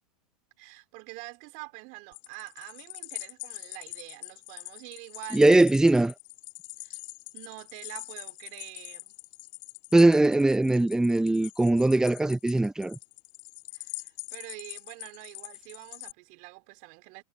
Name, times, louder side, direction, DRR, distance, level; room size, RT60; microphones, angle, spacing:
voice 1, 0.6-5.5 5.9-6.0 6.8-7.0 7.3-9.1 13.7-17.2, right 26 dB, 45° right, 4.1 m, -46 dB
sound 1, 2.1-16.1, left 27 dB, 45° left, 2.1 m, -44 dB
voice 2, 5.3-6.1 9.9-13.0, right 2 dB, 5° right, 0.8 m, -21 dB
hypercardioid pair, 125°, 20 cm